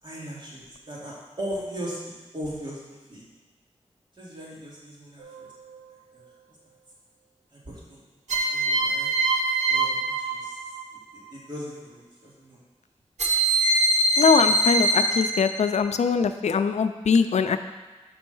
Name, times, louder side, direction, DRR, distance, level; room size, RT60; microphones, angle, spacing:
voice 1, 0.0-3.2 4.2-5.5 6.1-6.2 7.5-8.0 8.5-9.1 9.7-10.6 11.3-12.6, equal, 45° right, -6 dB, 2.6 m, -38 dB
sound 1, 5.2-5.8 8.3-10.9 13.2-15.8, right 2 dB, 90° right, 1.0 m, -24 dB
voice 2, 14.2-17.6, left 5 dB, 85° left, 10 dB, 0.4 m, -22 dB
6.1 x 5.3 x 5.5 m, 1.2 s
wide cardioid pair, 70°, 11 cm